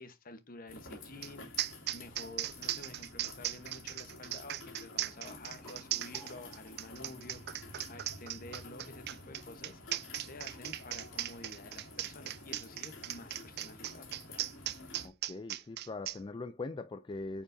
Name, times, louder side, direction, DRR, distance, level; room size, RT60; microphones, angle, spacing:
voice 1, 0.0-1.5 1.9-9.8 10.2-14.1, left 2 dB, 45° left, 1.0 m, -50 dB
sound 1, 0.7-15.1, left 2 dB, 70° left, 2.6 m, -51 dB
sound 2, 1.2-1.3 1.6-16.2, right 14 dB, 55° right, 0.4 m, -38 dB
sound 3, 5.1-8.4, left 1 dB, 10° left, 1.3 m, -61 dB
voice 2, 15.0-17.4, left 3 dB, 25° left, 0.3 m, -41 dB
8.6 x 4.8 x 2.6 m
head